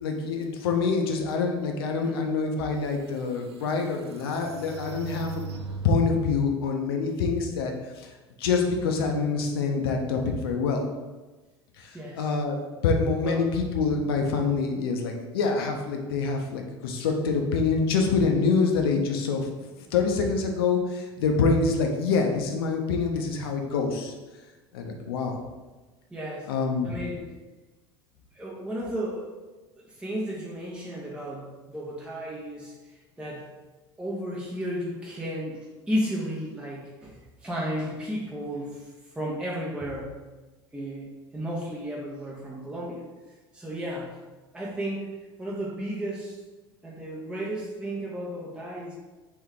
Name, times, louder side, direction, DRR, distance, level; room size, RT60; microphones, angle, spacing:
voice 1, 0.0-5.4 5.8-8.1 8.4-10.8 11.8-19.5 19.9-24.1 24.7-25.4 26.5-27.0, left 4 dB, 65° left, 3 dB, 0.6 m, -26 dB
sound 1, 2.5-2.6 3.2-6.3, right 5 dB, 75° right, 0.4 m, -39 dB
voice 2, 11.9-12.2 13.2-13.4 26.1-26.5 26.8-27.2 28.3-29.3 30.0-33.5 34.0-37.2 37.4-38.9 39.1-40.2 40.7-41.1 41.3-43.0 43.5-44.1 44.5-45.1 45.4-46.4 46.8-48.9, equal, 5° right, -5 dB, 0.7 m, -33 dB
3.6 x 3.0 x 3.5 m, 1.2 s
figure-of-eight pair, 70°, 14 cm